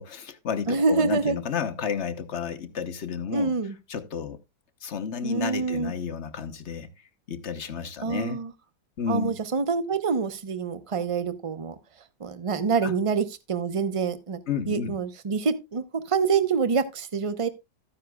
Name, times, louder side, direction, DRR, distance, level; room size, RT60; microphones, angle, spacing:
voice 1, 0.0-3.5 3.9-4.4 4.8-6.9 7.3-8.4 9.0-9.4 12.8-12.9 14.5-14.9, left 7 dB, 50° left, 1.0 m, -31 dB
voice 2, 0.7-1.3 3.3-3.7 5.2-5.9 8.0-8.5 9.1-11.7 12.2-14.4 14.7-17.5, right 5 dB, 40° right, 0.4 m, -26 dB
13.0 x 9.6 x 2.3 m
omnidirectional pair, 1.9 m